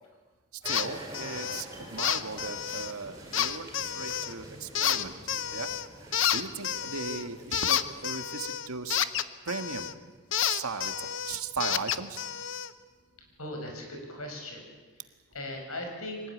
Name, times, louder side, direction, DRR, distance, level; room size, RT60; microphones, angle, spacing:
sound 1, 0.6-8.1, right 1 dB, 15° right, 5.2 m, -47 dB
voice 1, 0.6-5.1 5.5-5.7 6.0-9.0 9.4-9.9 10.4-12.2, right 4 dB, 85° right, 8 dB, 1.7 m, -37 dB
sound 2, 0.7-0.9 1.1-1.6 2.0-2.9 3.3-4.3 4.8-5.9 6.1-9.9 10.3-12.7, left 10 dB, 60° left, 0.9 m, -30 dB
voice 2, 13.4-14.6 15.3-16.2, left 1 dB, 80° left, 2 dB, 6.2 m, -38 dB
24.5 x 18.0 x 9.8 m, 1.4 s
head